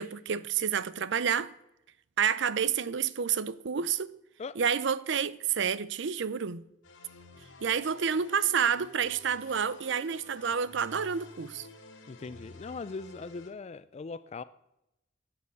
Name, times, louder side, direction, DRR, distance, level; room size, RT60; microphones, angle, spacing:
voice 1, 0.0-1.5 2.2-4.1 4.6-6.6 7.6-11.7, right 7 dB, 65° right, 0.6 m, -29 dB
sound 1, 6.8-13.5, left 2 dB, 85° left, 2.2 m, -51 dB
voice 2, 12.1-14.4, left 4 dB, 35° left, 0.4 m, -40 dB
11.0 x 9.3 x 8.3 m
head